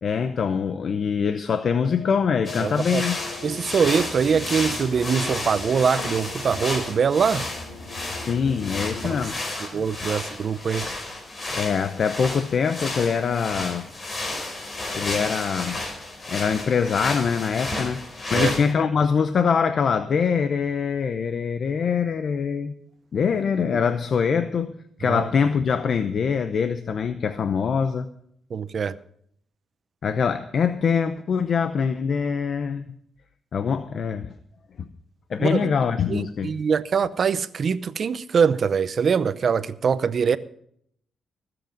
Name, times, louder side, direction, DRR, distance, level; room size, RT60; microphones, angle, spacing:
voice 1, 0.0-3.2 8.1-9.4 9.7-9.8 11.5-13.9 14.9-15.8 16.3-22.7 23.1-24.7 25.0-28.1 30.0-32.9 33.5-34.3 34.8-34.9 35.3-36.5, left 6 dB, 60° left, 0.8 m, -24 dB
sound 1, 1.8-9.3, left 3 dB, 90° left, 4.1 m, -39 dB
sound 2, 2.4-18.7, left 2 dB, 40° left, 4.8 m, -32 dB
voice 2, 2.6-3.0 3.4-7.5 9.0-9.2 9.7-10.9 18.3-18.5 23.6-23.8 25.0-25.3 28.5-29.0 35.4-35.7 36.1-40.4, right 6 dB, 55° right, 0.7 m, -23 dB
19.5 x 8.0 x 5.2 m
cardioid pair, 90°, 0 cm